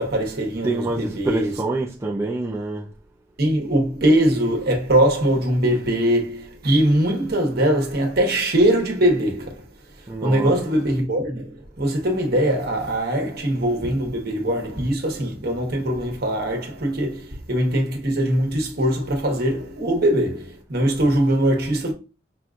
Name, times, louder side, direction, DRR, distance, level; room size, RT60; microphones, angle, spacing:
voice 1, 0.0-1.6 3.4-9.6 10.2-21.9, right 1 dB, 55° right, 1.0 m, -21 dB
voice 2, 0.6-2.9 10.1-10.6, right 2 dB, 15° right, 0.4 m, -26 dB
5.7 x 2.6 x 2.4 m
head